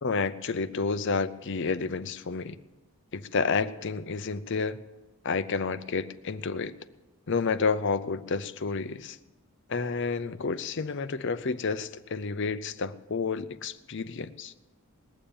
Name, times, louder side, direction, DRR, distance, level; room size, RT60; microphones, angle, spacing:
voice 1, 0.0-2.6 3.1-4.8 5.2-6.7 7.3-9.2 9.7-14.5, left 4 dB, 55° left, 12 dB, 0.6 m, -30 dB
20.0 x 7.2 x 8.6 m, 1.1 s
head